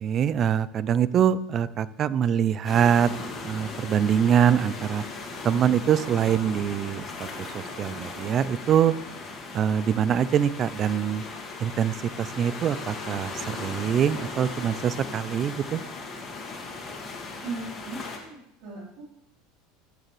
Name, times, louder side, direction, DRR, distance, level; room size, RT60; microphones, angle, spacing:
voice 1, 0.0-3.1 3.4-5.0 5.4-8.9 9.5-11.2 11.6-15.8, right 8 dB, 35° right, 18 dB, 0.4 m, -24 dB
sound 1, 2.6-18.2, left 3 dB, 25° left, 1.9 m, -37 dB
voice 2, 17.4-19.0, right 3 dB, 65° right, -4 dB, 3.7 m, -37 dB
15.0 x 6.6 x 3.2 m, 0.77 s
supercardioid pair, 130°, 0 cm